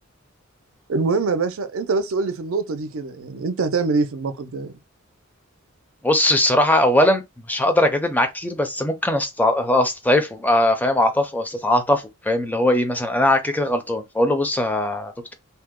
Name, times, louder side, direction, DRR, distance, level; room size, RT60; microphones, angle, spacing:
voice 1, 0.9-4.7, right 4 dB, 75° right, 0.5 m, -24 dB
voice 2, 6.0-15.3, left 1 dB, 10° left, 0.4 m, -20 dB
2.7 x 2.0 x 3.6 m
head